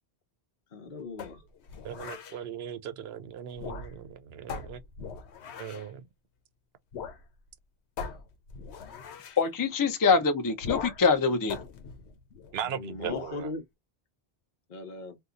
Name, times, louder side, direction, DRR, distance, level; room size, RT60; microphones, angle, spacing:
voice 1, 0.7-1.4 12.6-13.6 14.7-15.2, left 3 dB, 50° left, 0.9 m, -39 dB
sound 1, 1.2-2.4 3.5-4.1 4.5-5.9 6.9-7.2 7.5-7.6 8.0-9.4 10.6-11.1 11.5-12.6 13.1-13.4, left 6 dB, 85° left, 0.9 m, -40 dB
voice 2, 1.8-4.8 5.6-6.0 12.5-13.5, right 9 dB, 70° right, 0.8 m, -38 dB
voice 3, 9.4-11.6, left 5 dB, 30° left, 0.4 m, -24 dB
2.7 x 2.3 x 3.6 m
omnidirectional pair, 1.1 m